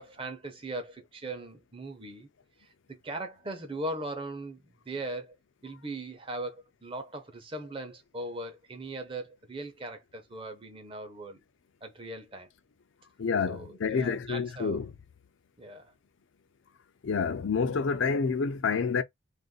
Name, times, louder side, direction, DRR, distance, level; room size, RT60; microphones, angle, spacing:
voice 1, 0.0-2.3 2.6-5.3 5.6-11.4 11.8-12.5 13.5-14.8 15.6-15.9, right 2 dB, 25° right, 0.7 m, -39 dB
voice 2, 13.2-14.9 17.0-19.0, left 5 dB, 80° left, 0.5 m, -28 dB
2.5 x 2.4 x 3.7 m
head